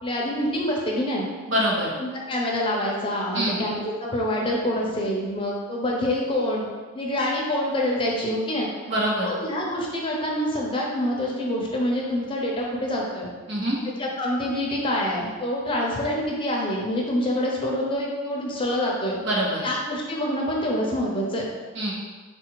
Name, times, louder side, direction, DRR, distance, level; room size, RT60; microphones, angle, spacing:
voice 1, 0.0-1.3 2.0-6.7 6.9-8.7 9.2-13.3 14.0-19.2 19.6-21.5, left 1 dB, 25° left, -2 dB, 0.6 m, -26 dB
voice 2, 1.4-1.9 3.3-3.6 8.9-9.3 13.5-13.8 19.2-19.7 21.7-21.9, equal, 60° right, -4 dB, 0.9 m, -24 dB
3.7 x 2.4 x 4.6 m, 1.4 s
head